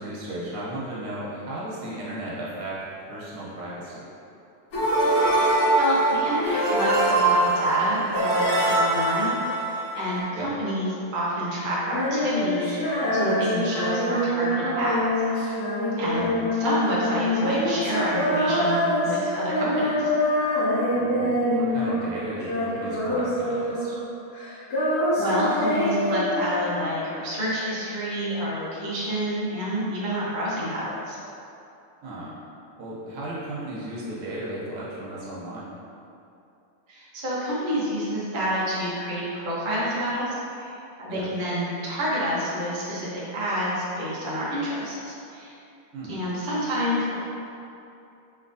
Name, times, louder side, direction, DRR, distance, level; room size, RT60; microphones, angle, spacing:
voice 1, 0.0-4.1 10.3-10.5 16.2-16.3 20.9-23.9 32.0-32.3 32.8-35.7 41.1-41.3 45.9-46.2, right 1 dB, 85° right, -7 dB, 1.9 m, -35 dB
sound 1, 4.7-10.2, right 2 dB, 80° left, 2.1 m, -22 dB
voice 2, 5.8-15.5 16.0-16.2 16.5-20.1 25.2-31.2 36.9-45.5 46.1-47.2, equal, 55° right, -8 dB, 0.5 m, -28 dB
Female singing, 11.8-22.1 22.4-24.1 24.3-27.0, left 1 dB, 65° left, 2.4 m, -25 dB
5.0 x 3.2 x 2.6 m, 2.7 s
omnidirectional pair, 2.4 m